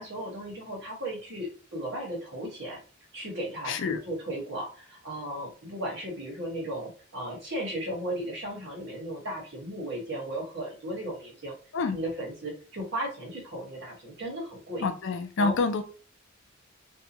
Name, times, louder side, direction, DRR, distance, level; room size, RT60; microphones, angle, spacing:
voice 1, 0.0-2.8 3.1-11.5 11.9-14.8 15.4-15.6, right 1 dB, 55° right, 1.4 m, -35 dB
voice 2, 3.6-4.0 11.7-12.0 14.8-15.8, left 4 dB, 60° left, 0.4 m, -27 dB
2.7 x 2.2 x 2.7 m
head